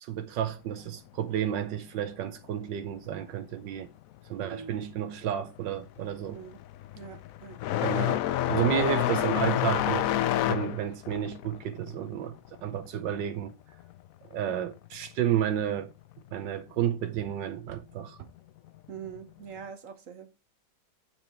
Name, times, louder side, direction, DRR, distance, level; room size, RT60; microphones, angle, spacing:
voice 1, 0.0-3.9 4.3-6.4 7.8-8.2 8.5-10.1 10.5-12.4 12.6-13.5 14.3-15.9 16.3-18.2, right 10 dB, 80° right, 1.4 m, -31 dB
voice 2, 4.4-4.7 6.3-6.6 6.9-7.6 8.8-9.1 18.9-20.3, right 7 dB, 55° right, 1.1 m, -42 dB
sound 1, 5.0-5.3 5.7-14.0 14.3-15.3 16.3-16.4 17.2-17.3 19.0-19.2, left 12 dB, 75° left, 0.8 m, -29 dB
6.8 x 5.9 x 4.3 m
omnidirectional pair, 2.0 m